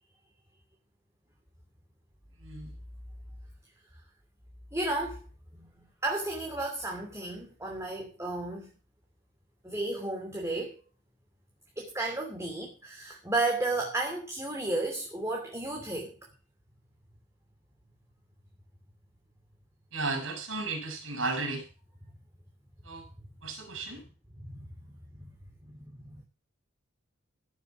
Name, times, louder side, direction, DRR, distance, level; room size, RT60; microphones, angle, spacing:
voice 1, 2.4-2.8 19.9-21.7 22.8-23.1 23.4-24.0, right 3 dB, 70° right, 2 dB, 5.5 m, -34 dB
voice 2, 4.7-5.2 5.5-8.7 9.6-10.8 11.8-16.2 24.4-25.3 25.6-26.2, right 2 dB, 15° right, 1 dB, 2.8 m, -33 dB
15.5 x 7.1 x 7.1 m, 0.34 s
head